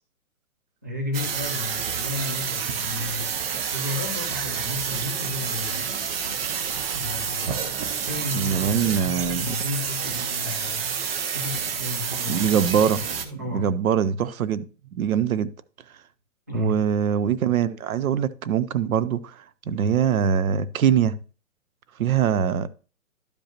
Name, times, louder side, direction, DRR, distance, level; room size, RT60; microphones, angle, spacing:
voice 1, 0.8-3.5 3.7-5.9 6.9-7.7 8.1-12.6 13.0-13.7 16.5-16.8, left 3 dB, 15° right, 0.3 m, -33 dB
sound 1, 1.1-13.3, right 7 dB, 45° right, 0.9 m, -29 dB
voice 2, 8.3-9.5 12.3-14.6 14.9-15.5 16.5-19.4 19.7-21.2 22.0-22.7, right 8 dB, 80° right, 0.7 m, -23 dB
12.0 x 5.2 x 2.9 m
hypercardioid pair, 145°, 42 cm